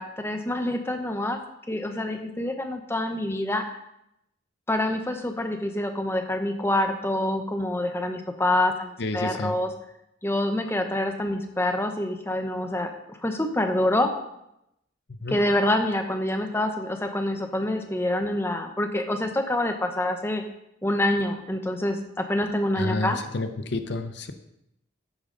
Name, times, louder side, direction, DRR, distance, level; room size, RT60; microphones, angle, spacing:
voice 1, 0.0-1.4 1.7-3.7 4.7-9.7 10.2-14.1 15.3-20.4 20.8-23.2, left 1 dB, 10° left, 5 dB, 0.9 m, -26 dB
voice 2, 9.0-9.6 15.2-15.4 22.8-24.3, left 2 dB, 55° left, 8 dB, 0.7 m, -30 dB
10.5 x 8.7 x 3.9 m, 0.82 s
head